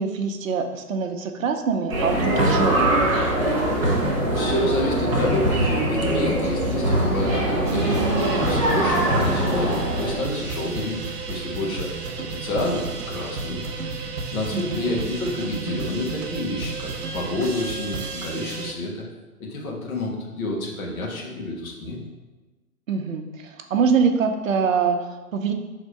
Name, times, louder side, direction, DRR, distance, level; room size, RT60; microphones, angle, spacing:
voice 1, 0.0-3.1 14.5-14.9 22.9-25.5, right 5 dB, 60° right, 5 dB, 0.8 m, -24 dB
sound 1, 1.9-10.1, right 1 dB, 5° right, 0.5 m, -22 dB
voice 2, 4.0-8.1 8.4-11.0 11.3-11.9 12.3-13.6 14.3-19.1 19.4-22.0, left 1 dB, 65° left, -1 dB, 1.8 m, -29 dB
sound 2, 7.6-18.7, right 4 dB, 85° right, 1.0 m, -32 dB
5.1 x 3.6 x 5.5 m, 1.2 s
figure-of-eight pair, 130°, 46 cm